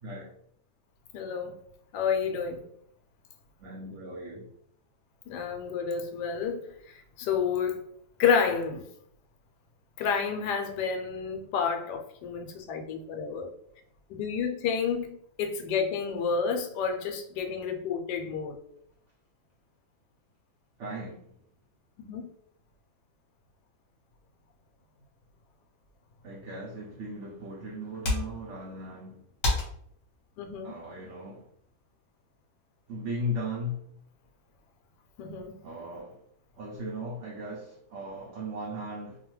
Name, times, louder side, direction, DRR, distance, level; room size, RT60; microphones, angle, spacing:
voice 1, 1.1-1.6 1.9-2.6 5.3-7.8 8.2-8.8 10.0-13.5 14.1-18.6 22.0-22.3 30.4-30.7 35.2-35.6, left 6 dB, 80° left, 1.1 m, -30 dB
voice 2, 3.6-4.5 20.8-21.3 26.2-29.2 30.6-31.5 32.9-33.9 35.6-36.2 36.6-39.2, equal, 85° right, 0.6 m, -37 dB
sound 1, 26.9-32.0, left 2 dB, 50° left, 1.0 m, -36 dB
2.8 x 2.3 x 3.0 m
omnidirectional pair, 1.9 m